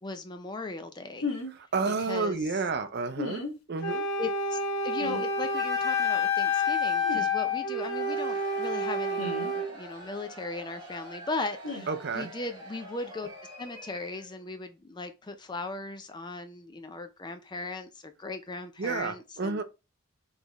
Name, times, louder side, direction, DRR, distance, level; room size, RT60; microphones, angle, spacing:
voice 1, 0.0-1.4 2.0-2.5 4.2-4.6 4.8-9.3 9.5-11.9 12.1-13.3 13.6-19.6, left 3 dB, 20° left, 0.4 m, -38 dB
sound 1, 1.2-1.5 3.2-3.5 5.0-5.3 7.0-7.3 9.2-9.5 11.6-11.8, left 3 dB, 85° left, 1.1 m, -34 dB
voice 2, 1.6-4.0 11.9-12.3 18.8-19.6, right 4 dB, 50° right, 0.5 m, -31 dB
Wind instrument woodwind instrument, 3.8-9.7, left 3 dB, 50° left, 1.4 m, -28 dB
Cheering / Crowd, 7.7-14.4, right 1 dB, 20° right, 1.1 m, -46 dB
4.3 x 3.3 x 2.9 m
head